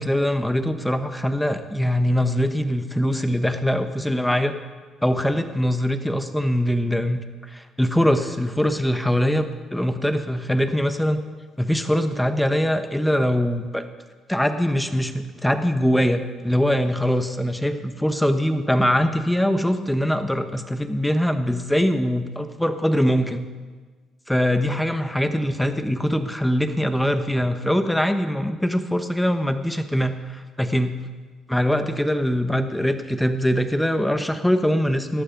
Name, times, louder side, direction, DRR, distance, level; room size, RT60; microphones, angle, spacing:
voice 1, 0.0-4.5 5.0-11.2 11.6-13.8 14.3-23.5 24.3-30.1 30.6-30.9 31.5-35.2, equal, 5° left, 8 dB, 1.1 m, -22 dB
18.5 x 12.5 x 3.9 m, 1.4 s
cardioid pair, 105°, 0 cm